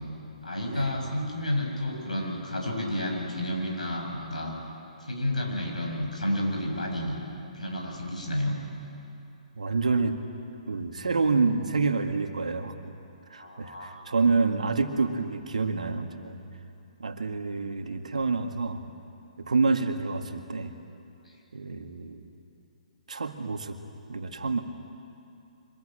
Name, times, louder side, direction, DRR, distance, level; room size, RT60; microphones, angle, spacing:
voice 1, 0.4-4.5 5.0-7.2 7.5-8.6 13.4-14.0 21.2-21.3, left 1 dB, 80° left, 1 dB, 7.0 m, -31 dB
voice 2, 9.6-10.2 10.7-12.8 13.3-16.4 17.0-18.8 19.5-20.7 21.5-22.2 23.1-23.8 24.1-24.6, right 4 dB, 75° right, 6 dB, 2.0 m, -27 dB
25.0 x 20.5 x 9.0 m, 2.8 s
figure-of-eight pair, 130°, 4 cm